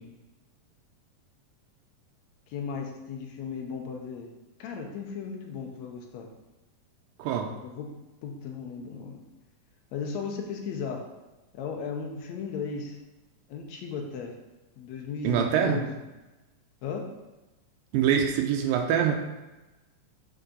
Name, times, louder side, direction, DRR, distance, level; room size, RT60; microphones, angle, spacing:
voice 1, 2.5-4.3 4.6-6.3 7.6-9.3 9.9-11.0 11.5-13.0 13.5-14.3 14.8-16.0 16.8-17.1, left 5 dB, 80° left, 2 dB, 1.6 m, -36 dB
voice 2, 7.2-7.5 15.2-15.8 17.9-19.2, right 8 dB, 85° right, 3 dB, 2.3 m, -24 dB
6.8 x 4.6 x 3.7 m, 1.1 s
omnidirectional pair, 4.0 m